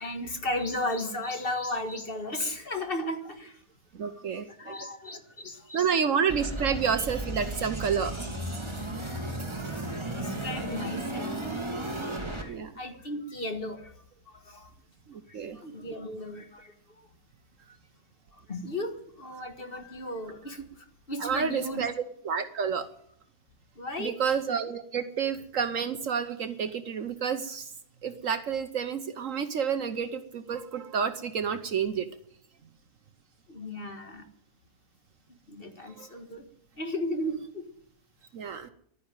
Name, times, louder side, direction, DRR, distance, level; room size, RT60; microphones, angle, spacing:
voice 1, 0.0-3.6 4.0-5.9 9.0-9.3 9.9-11.4 11.8-14.7 15.3-17.1 18.3-21.9 23.8-24.4 33.5-34.3 35.3-36.4 36.8-37.7, left 1 dB, 35° left, 6 dB, 1.8 m, -36 dB
voice 2, 3.9-4.8 5.7-8.3 12.5-12.7 15.1-15.6 21.2-21.9 22.2-22.9 24.0-27.7 28.0-32.1 35.8-36.1 38.3-38.7, right 7 dB, 60° right, 10 dB, 1.2 m, -29 dB
sound 1, 6.3-12.4, right 1 dB, 15° right, 2.1 m, -34 dB
12.0 x 10.0 x 9.0 m, 0.64 s
omnidirectional pair, 1.7 m